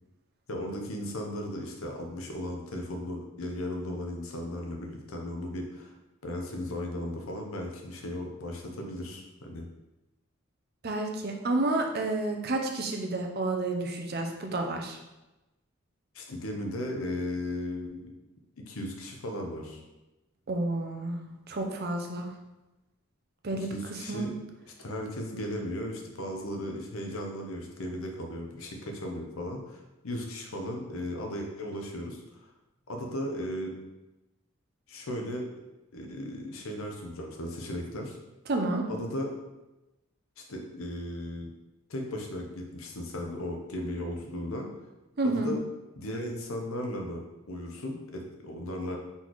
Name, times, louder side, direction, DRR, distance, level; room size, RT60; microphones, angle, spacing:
voice 1, 0.5-5.9 6.2-9.6 16.1-18.1 18.7-19.8 23.7-24.3 24.7-32.4 32.9-33.7 34.9-35.6 35.9-38.2 38.9-39.3 40.4-41.5 41.9-44.7 45.2-45.6 45.9-49.0, left 1 dB, 80° left, 2 dB, 0.8 m, -36 dB
voice 2, 10.8-15.0 20.5-21.2 21.5-22.3 23.4-24.3 38.5-38.8 45.2-45.5, right 2 dB, 50° right, 3 dB, 0.6 m, -30 dB
4.1 x 3.9 x 3.0 m, 1.0 s
head